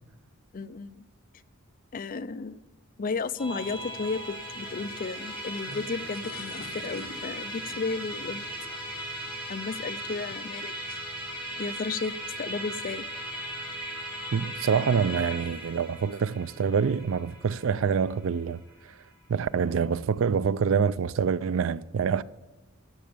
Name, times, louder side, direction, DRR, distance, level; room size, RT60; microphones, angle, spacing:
voice 1, 0.5-1.0 1.9-2.6 3.0-8.5 8.9-9.0 9.5-11.0 11.6-13.1, left 4 dB, 40° left, 0.4 m, -34 dB
Musical instrument, 3.4-18.9, right 1 dB, 5° right, 3.0 m, -38 dB
sound 1, 3.7-9.0, left 2 dB, 65° left, 1.3 m, -48 dB
voice 2, 14.3-18.6 19.3-22.2, right 6 dB, 65° right, 0.4 m, -26 dB
12.5 x 7.0 x 6.9 m
head